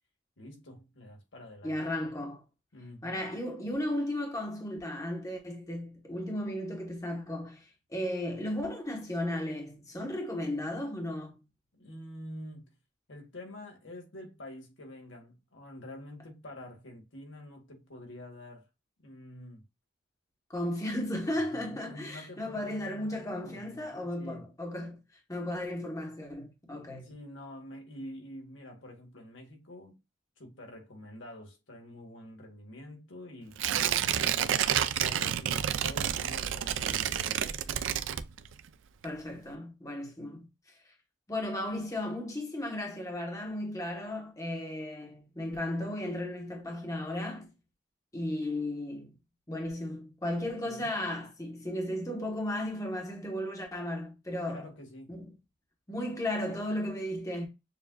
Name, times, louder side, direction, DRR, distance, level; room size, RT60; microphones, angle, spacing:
voice 1, 0.4-1.8 2.7-3.2 11.7-12.7 13.1-18.7 19.0-19.6 21.3-24.5 26.8-30.0 30.4-37.8 50.4-51.1 54.4-55.2, left 1 dB, 85° left, 1.5 m, -47 dB
voice 2, 1.6-2.4 3.0-11.3 20.5-25.0 25.3-27.1 39.0-40.5 41.3-47.5 48.1-49.1 49.5-54.7 55.1-55.3 55.9-57.5, left 1 dB, 15° left, 1.1 m, -35 dB
Tearing, 33.6-38.7 39.0-39.1, right 10 dB, 85° right, 0.4 m, -29 dB
6.7 x 2.5 x 2.2 m
head